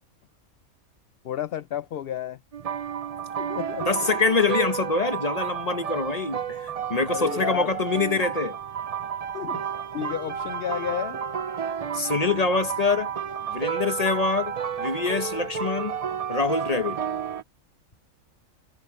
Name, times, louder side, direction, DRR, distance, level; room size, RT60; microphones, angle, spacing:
voice 1, 1.2-2.4 3.4-4.1 7.1-7.7 9.3-9.6 9.9-11.2, left 10 dB, 60° left, 0.6 m, -31 dB
sound 1, 2.5-17.4, right 7 dB, 50° right, 0.4 m, -31 dB
voice 2, 3.8-8.6 11.9-13.1 13.5-16.0 16.3-17.0, left 4 dB, 25° left, 1.5 m, -25 dB
omnidirectional pair, 1.5 m